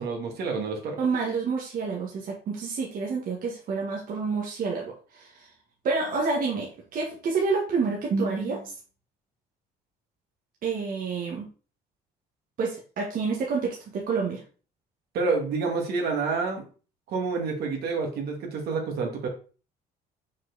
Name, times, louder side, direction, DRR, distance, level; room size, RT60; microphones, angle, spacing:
voice 1, 0.0-1.0 15.1-16.7 17.1-19.3, right 4 dB, 70° right, 2 dB, 2.1 m, -28 dB
voice 2, 1.0-5.5 5.8-8.7 10.6-11.5 12.6-14.4, right 4 dB, 55° right, -1 dB, 1.6 m, -28 dB
6.1 x 4.8 x 4.0 m, 0.37 s
cardioid pair, 110°, 17 cm